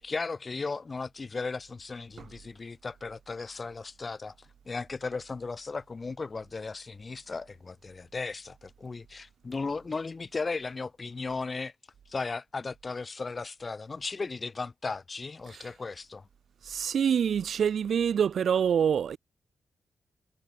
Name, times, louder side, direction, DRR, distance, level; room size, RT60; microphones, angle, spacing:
voice 1, 0.0-11.7 12.1-16.3, left 4 dB, 30° left, 2.3 m, -36 dB
voice 2, 16.6-19.2, right 8 dB, 65° right, 0.6 m, -25 dB
wide cardioid pair, 125°, 0 cm